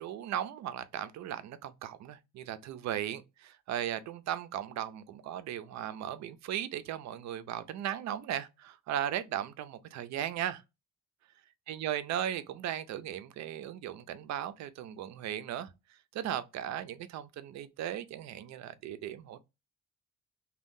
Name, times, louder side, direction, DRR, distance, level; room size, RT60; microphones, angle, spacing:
voice 1, 0.0-10.6 11.7-19.4, right 10 dB, 65° right, 0.5 m, -37 dB
2.6 x 2.2 x 3.5 m
cardioid pair, 90°, 30 cm